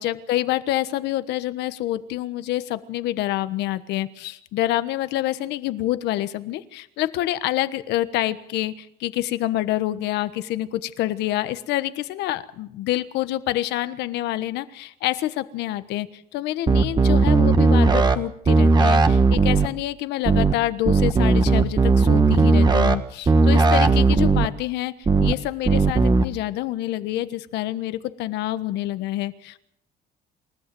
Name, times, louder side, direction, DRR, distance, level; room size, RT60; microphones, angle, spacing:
voice 1, 0.0-16.1 16.3-24.9 25.2-29.6, left 15 dB, 85° left, 12 dB, 1.3 m, -27 dB
sound 1, 16.7-18.2 18.5-19.7 20.3-20.5 20.9-23.0 23.3-24.5 25.1-25.3 25.7-26.2, right 4 dB, 25° right, 1.5 m, -17 dB
28.0 x 13.5 x 7.7 m, 0.75 s
cardioid pair, 110°, 17 cm